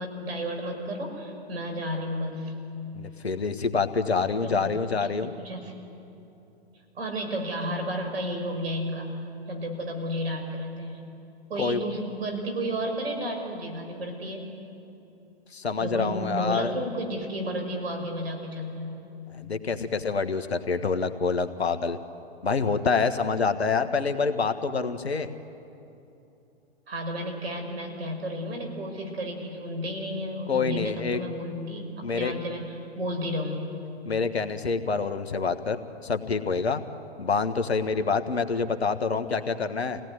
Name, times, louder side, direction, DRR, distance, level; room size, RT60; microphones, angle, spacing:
voice 1, 0.0-2.5 4.4-4.8 5.2-5.7 7.0-9.1 9.5-11.1 11.5-14.5 15.8-19.1 26.9-33.7, equal, 70° right, 4 dB, 5.9 m, -32 dB
voice 2, 2.9-5.3 11.6-11.8 15.5-16.7 19.4-22.0 22.4-25.3 30.5-31.2 32.0-32.3 34.0-35.8 36.0-36.8 37.2-40.0, left 5 dB, 80° left, 9 dB, 1.6 m, -26 dB
27.5 x 18.0 x 9.6 m, 2.9 s
figure-of-eight pair, 115°, 32 cm